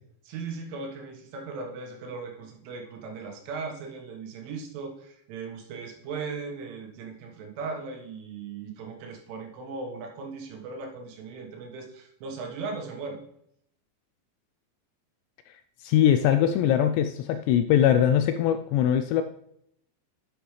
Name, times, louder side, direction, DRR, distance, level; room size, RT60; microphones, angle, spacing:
voice 1, 0.3-13.2, right 4 dB, 85° right, 2 dB, 3.9 m, -38 dB
voice 2, 15.8-19.2, left 10 dB, 85° left, 9 dB, 2.5 m, -22 dB
10.0 x 7.2 x 3.2 m, 0.71 s
omnidirectional pair, 5.4 m